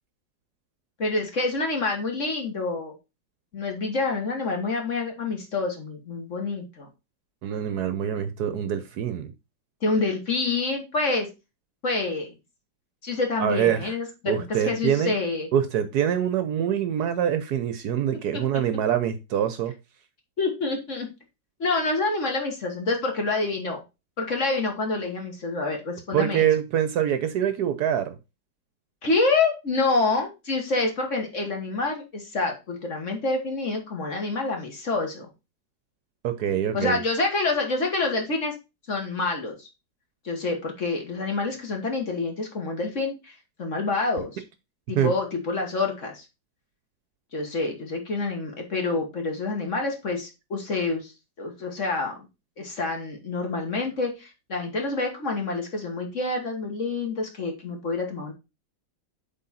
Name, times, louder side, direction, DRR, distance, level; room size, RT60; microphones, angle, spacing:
voice 1, 1.0-2.9 3.5-6.9 9.8-11.3 11.8-12.3 13.0-15.5 18.3-18.6 20.4-21.1 21.6-23.8 24.2-26.5 29.0-35.3 36.7-38.5 38.9-39.7 40.2-44.4 44.9-46.2 47.3-51.1 51.4-52.1 52.6-58.3, left 3 dB, 45° left, 1.7 m, -27 dB
voice 2, 7.4-9.3 13.4-13.9 14.3-15.1 15.5-19.7 26.1-28.2 36.2-37.0 45.0-45.1, right 9 dB, 70° right, 1.1 m, -25 dB
7.7 x 3.8 x 4.1 m
omnidirectional pair, 2.0 m